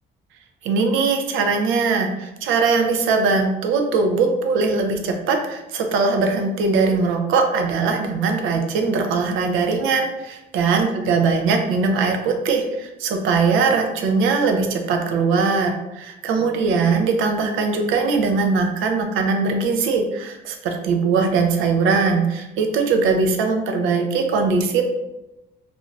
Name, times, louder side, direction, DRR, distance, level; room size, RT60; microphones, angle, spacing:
voice 1, 0.6-24.8, right 4 dB, 90° right, 3 dB, 0.5 m, -20 dB
2.5 x 2.3 x 3.1 m, 0.97 s
cardioid pair, 90°, 20 cm